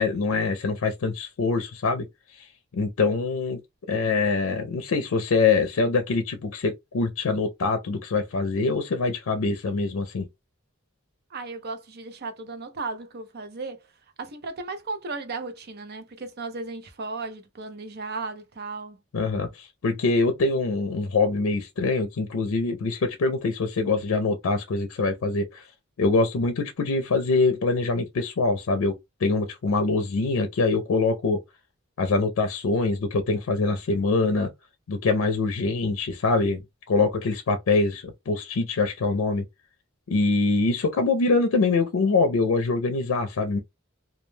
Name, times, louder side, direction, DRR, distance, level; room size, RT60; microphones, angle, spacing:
voice 1, 0.0-2.1 2.4-2.5 2.7-3.6 3.9-10.3 19.1-25.7 26.0-31.4 32.0-34.5 34.9-36.6 36.9-39.4 40.1-43.6, left 3 dB, 90° left, 0.5 m, -24 dB
voice 2, 11.3-13.9 14.2-19.0, right 3 dB, 50° right, 0.6 m, -35 dB
2.3 x 2.1 x 3.1 m
head